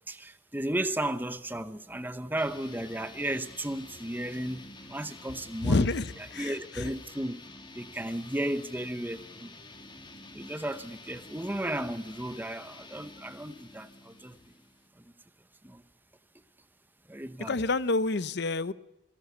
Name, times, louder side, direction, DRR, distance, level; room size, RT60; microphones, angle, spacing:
voice 1, 0.1-7.4 7.7-9.5 10.3-14.4 15.6-15.8 17.1-17.6, right 1 dB, 10° right, 0.9 m, -34 dB
sound 1, 2.4-14.9, left 2 dB, 25° left, 2.7 m, -49 dB
voice 2, 5.6-6.0 6.3-6.5 17.4-18.7, left 3 dB, 60° left, 0.8 m, -27 dB
27.0 x 17.5 x 6.8 m
head